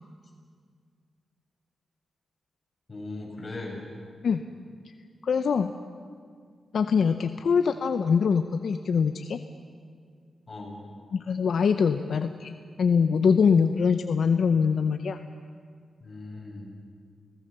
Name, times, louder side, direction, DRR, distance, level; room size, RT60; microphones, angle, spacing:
voice 1, 2.9-3.8 10.5-10.8 16.0-16.8, left 2 dB, 30° left, -2 dB, 7.7 m, -38 dB
voice 2, 5.2-5.7 6.7-9.4 11.1-15.2, left 6 dB, 70° left, 8 dB, 0.7 m, -23 dB
29.0 x 18.0 x 6.8 m, 2.1 s
cardioid pair, 95°, 0 cm